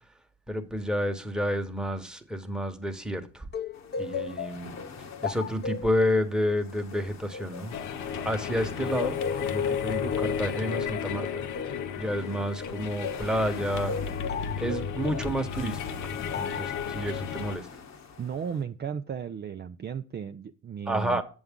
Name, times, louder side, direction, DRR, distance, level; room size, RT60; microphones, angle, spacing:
voice 1, 0.5-3.5 4.0-4.7 5.2-7.8 8.2-11.4 12.0-13.9 14.6-17.7 20.9-21.2, equal, 5° right, 1.2 m, -30 dB
sound 1, 3.5-8.5 9.0-13.3 13.9-15.3 16.3-16.8, left 5 dB, 35° left, 0.7 m, -37 dB
sound 2, 3.7-18.6, left 5 dB, 60° left, 1.2 m, -46 dB
sound 3, 7.7-17.6, left 7 dB, 80° left, 0.8 m, -33 dB
voice 2, 18.2-21.2, right 7 dB, 35° right, 0.5 m, -35 dB
7.9 x 7.1 x 3.7 m
cardioid pair, 90°, 30 cm